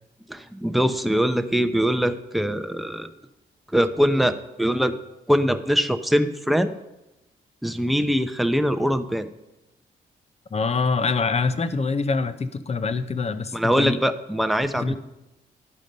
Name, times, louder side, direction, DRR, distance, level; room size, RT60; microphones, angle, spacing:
voice 1, 0.3-3.1 3.7-5.0 5.3-6.7 7.6-9.3 13.5-15.0, equal, ahead, 9 dB, 0.7 m, -22 dB
voice 2, 10.5-14.0 14.7-15.0, left 4 dB, 35° left, 12 dB, 0.7 m, -25 dB
11.0 x 5.1 x 5.3 m, 0.97 s
cardioid pair, 65°, 18 cm